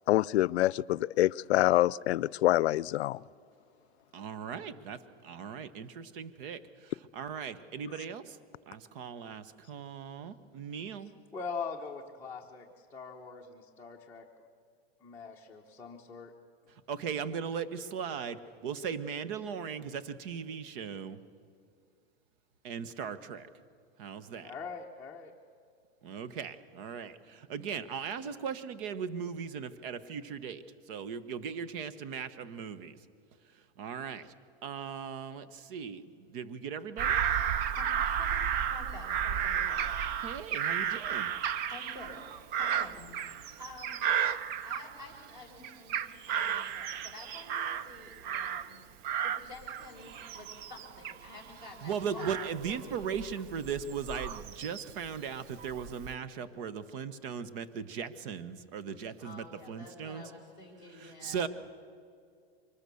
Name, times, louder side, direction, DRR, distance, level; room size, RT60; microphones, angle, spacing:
voice 1, 0.1-3.2, left 15 dB, 90° left, 22 dB, 0.5 m, -26 dB
voice 2, 4.1-8.4 8.7-11.1 16.9-21.2 22.6-23.5 24.0-24.5 26.0-33.0 33.8-34.3 34.6-37.2 40.2-41.3 51.8-60.2 61.0-61.5, right 7 dB, 55° right, 14 dB, 1.3 m, -38 dB
voice 3, 11.3-14.2 15.0-16.3 24.4-25.3, left 5 dB, 5° left, -4 dB, 1.1 m, -42 dB
Bird vocalization bird call bird song / Crow, 37.0-45.3 45.6-48.8 49.0-55.1 55.6-56.2, right 9 dB, 30° right, 0.5 m, -33 dB
voice 4, 37.7-39.9 41.7-44.1 44.6-48.9 49.2-52.3 52.7-53.1 59.2-61.5, left 2 dB, 10° right, 1 dB, 5.5 m, -49 dB
24.0 x 20.5 x 7.0 m, 2.3 s
supercardioid pair, 150°, 32 cm